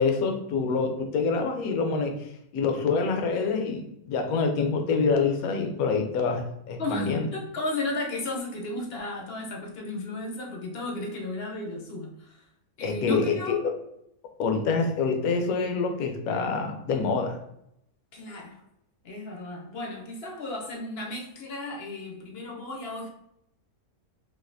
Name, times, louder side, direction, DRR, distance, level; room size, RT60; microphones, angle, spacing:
voice 1, 0.0-7.3 12.8-13.7 14.4-17.4, left 4 dB, 70° left, 4 dB, 1.0 m, -26 dB
voice 2, 6.8-12.4 12.8-13.6 18.1-18.6 19.0-23.1, left 2 dB, 55° left, 0 dB, 0.7 m, -34 dB
4.0 x 2.6 x 2.6 m, 0.78 s
omnidirectional pair, 1.6 m